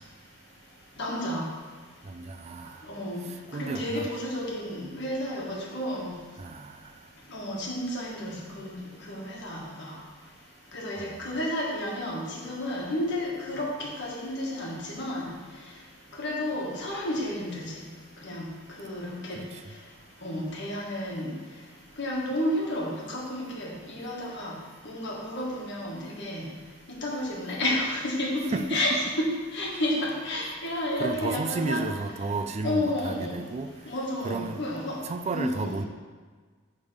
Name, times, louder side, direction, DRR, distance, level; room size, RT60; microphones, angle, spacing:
voice 1, 1.0-1.5 2.9-3.2 3.5-6.1 7.3-8.7 9.1-10.0 10.7-15.3 16.2-17.8 18.2-18.4 18.8-19.4 20.2-21.3 22.0-24.5 24.8-26.5 27.0-31.8 32.6-33.4 33.9-35.0 35.3-35.8, left 1 dB, 60° left, -3 dB, 1.4 m, -31 dB
voice 2, 2.0-2.8 3.5-4.1 6.4-6.8 19.3-19.4 28.5-28.8 31.0-33.7 34.2-34.6 35.0-35.8, right 3 dB, 35° right, 8 dB, 0.3 m, -32 dB
6.3 x 3.6 x 5.0 m, 1.5 s
head